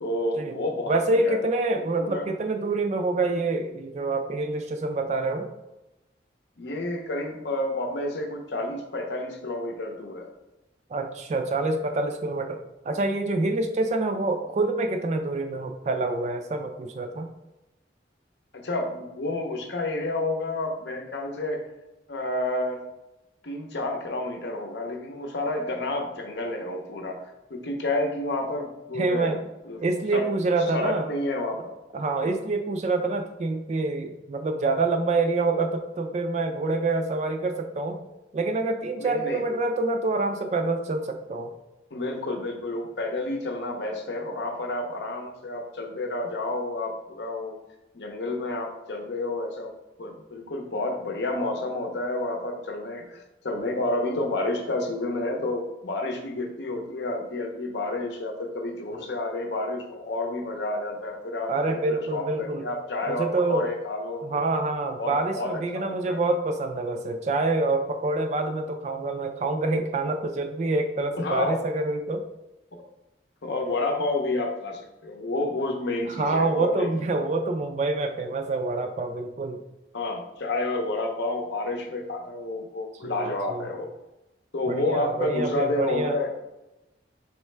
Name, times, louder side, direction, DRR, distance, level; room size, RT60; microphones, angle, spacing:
voice 1, 0.0-1.4 2.0-2.2 6.6-10.3 18.5-21.6 22.1-22.8 23.4-27.2 27.5-29.8 30.1-30.3 30.7-31.6 32.2-32.4 39.0-39.4 41.9-47.5 47.9-49.7 50.0-64.5 65.0-66.2 71.2-71.6 73.4-77.0 79.9-83.9 84.5-86.3, left 2 dB, 65° left, 3 dB, 0.7 m, -30 dB
voice 2, 0.9-5.5 10.9-12.6 12.8-17.3 28.9-29.4 29.8-31.1 31.9-38.0 38.3-41.5 61.5-62.6 63.1-63.7 64.2-72.2 76.1-79.6 83.0-83.7 84.7-86.2, right 2 dB, 35° right, 5 dB, 0.3 m, -26 dB
4.4 x 3.1 x 3.3 m, 0.98 s
head